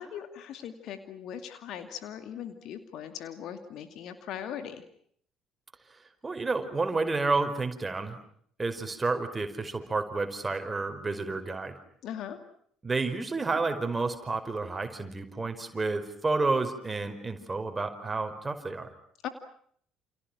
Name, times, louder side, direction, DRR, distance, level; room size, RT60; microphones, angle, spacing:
voice 1, 0.0-4.8 12.0-12.4 19.2-19.3, left 9 dB, 60° left, 8 dB, 2.3 m, -39 dB
voice 2, 6.2-8.2 8.6-11.8 12.8-18.9, right 3 dB, 20° right, 6 dB, 5.0 m, -30 dB
29.5 x 29.0 x 6.0 m, 0.63 s
figure-of-eight pair, 55°, 0 cm